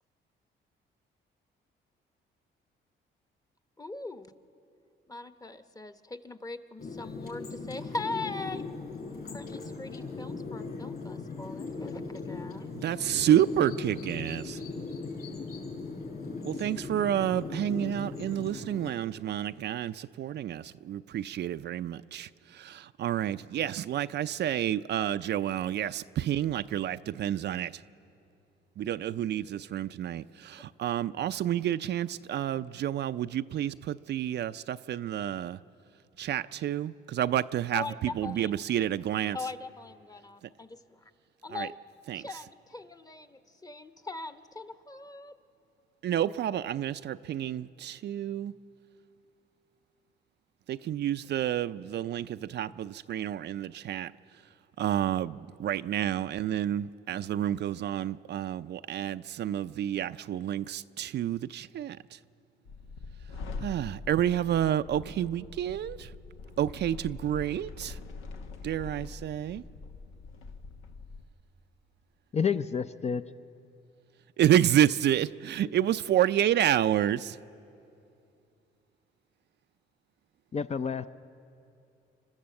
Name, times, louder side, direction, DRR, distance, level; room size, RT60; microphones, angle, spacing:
voice 1, 3.8-4.3 5.1-8.6 9.1-12.7 37.7-38.5 39.3-41.0 41.4-41.7 42.1-45.4, left 3 dB, 20° left, 10 dB, 0.9 m, -40 dB
sound 1, 6.8-18.9, left 4 dB, 50° left, 5.7 m, -39 dB
voice 2, 12.8-14.6 16.4-27.7 28.8-35.6 36.2-39.4 41.5-41.7 42.1-42.2 46.0-48.5 50.7-54.1 54.8-62.0 63.6-66.1 66.6-68.0 68.6-69.6 74.4-77.4, right 11 dB, 60° right, 12 dB, 0.5 m, -29 dB
sound 2, 62.7-71.3, left 4 dB, 90° left, 1.2 m, -43 dB
voice 3, 72.3-73.2 80.5-81.1, left 6 dB, 35° left, 10 dB, 0.5 m, -29 dB
28.0 x 12.5 x 7.6 m, 2.6 s
cardioid pair, 90°, 20 cm